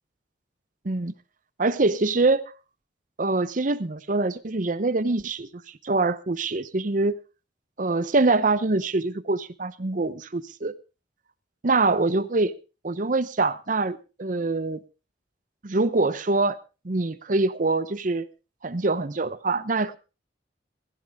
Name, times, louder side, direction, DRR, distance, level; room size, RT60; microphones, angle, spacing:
voice 1, 1.6-2.5 3.2-5.5 5.8-7.2 7.8-10.8 11.6-12.5 12.8-14.8 15.6-16.6 16.8-18.3 18.6-20.0, right 3 dB, 45° right, 0.7 m, -24 dB
16.0 x 16.0 x 3.5 m
head